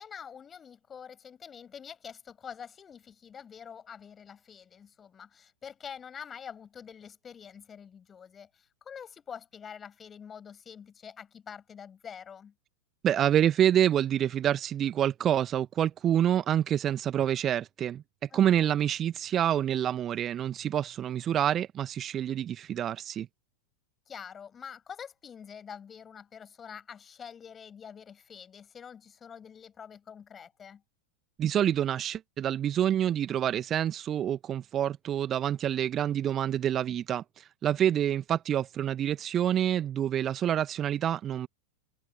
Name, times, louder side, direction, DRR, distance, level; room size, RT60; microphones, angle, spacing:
voice 1, 0.0-12.5 18.3-18.7 24.1-30.8, left 7 dB, 20° left, 7.5 m, -46 dB
voice 2, 13.0-18.0 18.3-23.3 31.4-41.5, right 10 dB, 30° right, 1.3 m, -27 dB
open air
figure-of-eight pair, 90°, 0 cm